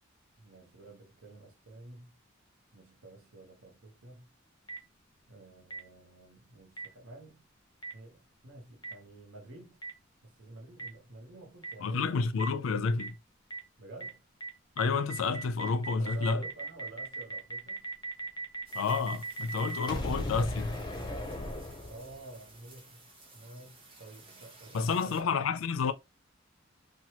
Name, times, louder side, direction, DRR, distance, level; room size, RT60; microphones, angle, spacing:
voice 1, 0.4-2.2 2.7-4.3 5.3-7.4 7.9-9.8 10.2-12.2 13.8-14.2 15.9-17.9 21.8-23.1 23.3-25.4, right 2 dB, 80° right, 0.8 m, -50 dB
Boom, 4.7-4.8 5.7-5.8 6.8-6.9 7.8-7.9 8.8-8.9 9.8-9.9 10.8-10.9 11.6-11.7 12.4-12.5 13.0-13.1 13.5-13.6 14.0-14.1 14.4-14.5 14.8-22.3, right 1 dB, 20° left, 0.5 m, -37 dB
voice 2, 11.8-13.2 14.8-16.4 18.7-20.8 24.7-25.9, left 4 dB, 75° left, 0.4 m, -30 dB
sound 1, 18.7-25.2, right 2 dB, 25° right, 0.9 m, -56 dB
2.9 x 2.2 x 2.8 m
head